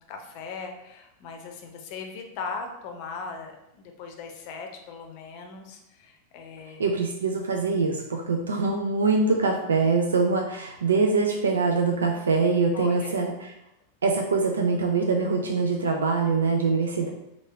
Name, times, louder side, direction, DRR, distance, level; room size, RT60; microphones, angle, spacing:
voice 1, 0.0-6.8 12.7-13.2, left 4 dB, 45° left, 4 dB, 0.6 m, -39 dB
voice 2, 6.8-13.6 14.0-17.1, right 4 dB, 70° right, 2 dB, 0.3 m, -24 dB
3.5 x 2.4 x 3.4 m, 0.86 s
figure-of-eight pair, 90°, 0 cm